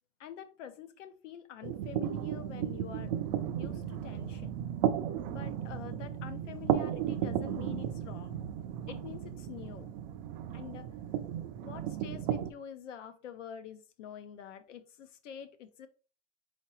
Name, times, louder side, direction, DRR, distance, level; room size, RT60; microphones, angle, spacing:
voice 1, 0.2-3.1 3.6-4.6 5.3-8.4 8.9-9.9 10.5-10.9 11.6-15.9, left 9 dB, 80° left, 0.8 m, -46 dB
sound 1, 1.6-12.5, right 10 dB, 40° right, 0.4 m, -34 dB
4.4 x 4.0 x 3.0 m
supercardioid pair, 140°, 36 cm